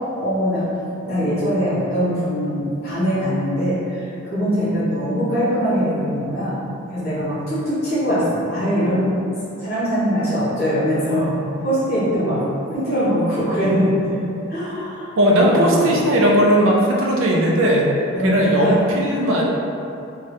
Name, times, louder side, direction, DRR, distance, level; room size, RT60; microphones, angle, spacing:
voice 1, 0.2-0.7 1.0-6.6 6.9-9.1 9.6-12.4 12.7-14.1 14.5-15.1 15.4-16.0 18.1-18.8, equal, 50° left, -11 dB, 1.4 m, -22 dB
voice 2, 15.2-17.9 18.2-19.5, equal, 65° right, -2 dB, 0.4 m, -17 dB
2.8 x 2.2 x 3.2 m, 2.7 s
head